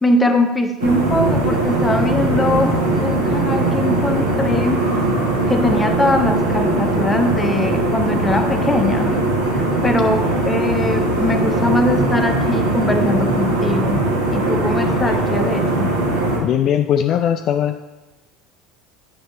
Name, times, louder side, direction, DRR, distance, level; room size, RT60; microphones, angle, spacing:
voice 1, 0.0-4.8 5.5-9.2 9.5-15.9, left 2 dB, 10° left, 5 dB, 0.8 m, -21 dB
sound 1, 0.8-16.4, right 2 dB, 70° right, 1.3 m, -19 dB
voice 2, 16.4-17.8, left 9 dB, 45° left, 7 dB, 0.3 m, -19 dB
9.4 x 5.2 x 3.2 m, 1.1 s
figure-of-eight pair, 70°, 0 cm